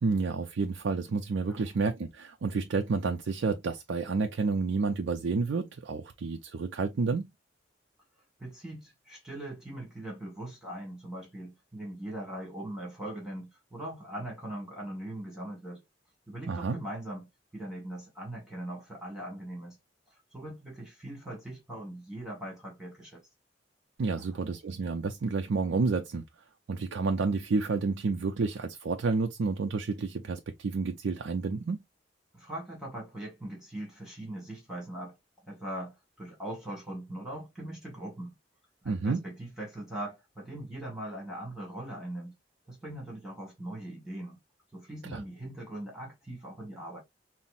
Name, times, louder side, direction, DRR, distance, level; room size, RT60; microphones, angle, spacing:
voice 1, 0.0-7.3 16.5-16.8 24.0-26.2 26.7-31.8 38.9-39.2 45.0-45.2, right 4 dB, 80° right, 0.5 m, -30 dB
voice 2, 8.4-15.8 16.3-19.8 20.1-23.2 24.1-24.2 32.3-35.1 35.5-38.3 38.8-42.3 42.7-44.4 44.7-47.0, right 1 dB, 5° right, 1.6 m, -41 dB
5.5 x 2.0 x 2.5 m
head